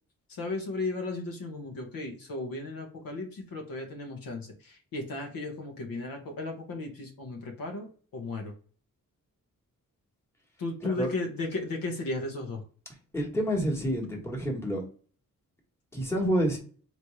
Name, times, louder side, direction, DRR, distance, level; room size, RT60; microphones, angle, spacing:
voice 1, 0.3-8.5 10.6-12.6, left 2 dB, 80° left, 1 dB, 1.3 m, -35 dB
voice 2, 13.1-14.8 15.9-16.6, equal, 5° left, -1 dB, 1.3 m, -28 dB
4.2 x 3.2 x 3.2 m, 0.41 s
wide cardioid pair, 130°, 34 cm